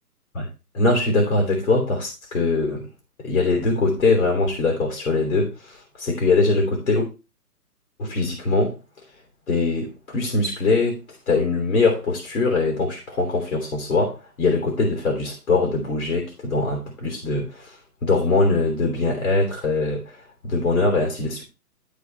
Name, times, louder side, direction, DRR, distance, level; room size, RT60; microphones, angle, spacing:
voice 1, 0.7-2.9 3.2-7.1 8.0-8.8 9.5-21.4, left 3 dB, 55° left, 3.5 m, -22 dB
12.5 x 4.5 x 4.5 m
figure-of-eight pair, 140°, 47 cm